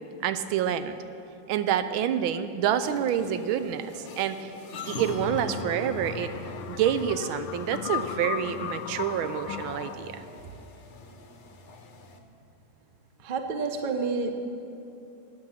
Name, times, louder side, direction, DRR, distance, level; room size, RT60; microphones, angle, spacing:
voice 1, 0.2-1.0 1.5-4.5 4.9-6.3 6.7-10.2, right 9 dB, 85° right, 11 dB, 1.4 m, -28 dB
sound 1, 2.8-12.2, left 3 dB, 50° left, 0.8 m, -41 dB
sound 2, 4.9-10.0, left 11 dB, 80° left, 1.3 m, -37 dB
voice 2, 13.2-14.3, right 4 dB, 60° right, 6 dB, 0.5 m, -29 dB
13.5 x 9.2 x 5.7 m, 2.8 s
omnidirectional pair, 2.2 m